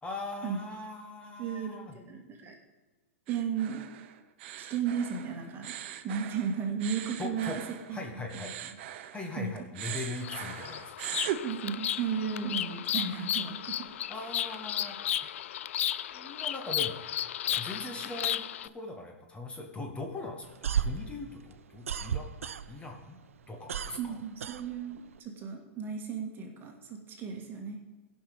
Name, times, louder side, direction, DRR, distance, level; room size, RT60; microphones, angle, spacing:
voice 1, 0.0-2.0 7.2-8.5 9.1-11.1 14.1-15.1 16.1-17.0 17.6-18.4 18.7-22.3 22.7-23.2 23.5-24.2, left 2 dB, 15° left, 2 dB, 1.4 m, -40 dB
voice 2, 1.4-2.5 3.3-3.8 4.6-5.8 6.0-7.6 7.9-8.5 9.4-9.5 11.4-13.9 24.0-27.8, right 7 dB, 30° right, 2 dB, 1.9 m, -34 dB
sound 1, 3.3-9.4 9.7-11.4, right 11 dB, 55° right, 0.8 m, -40 dB
Bird vocalization bird call bird song, 10.2-18.7, left 11 dB, 75° left, 0.4 m, -34 dB
sound 2, 20.4-23.0 23.3-25.2, right 7 dB, 85° right, 0.4 m, -33 dB
16.0 x 5.8 x 5.1 m, 1.2 s
hypercardioid pair, 115°, 7 cm